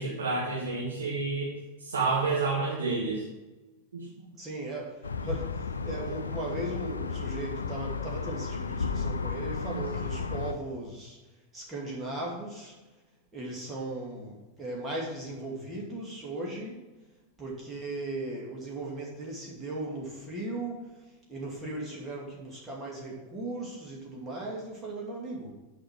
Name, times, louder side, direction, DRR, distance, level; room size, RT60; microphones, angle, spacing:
voice 1, 0.0-1.5 1.8-3.2 3.9-4.1 9.7-10.2, right 3 dB, 65° right, -6 dB, 2.1 m, -30 dB
voice 2, 4.4-11.2 11.5-12.8 13.3-16.8 17.4-20.9 21.3-25.6, right 2 dB, 20° right, -3 dB, 2.4 m, -37 dB
sound 1, 5.0-10.5, left 5 dB, 75° left, 0.5 m, -33 dB
10.0 x 5.4 x 6.1 m, 1.1 s
figure-of-eight pair, 90°, 0 cm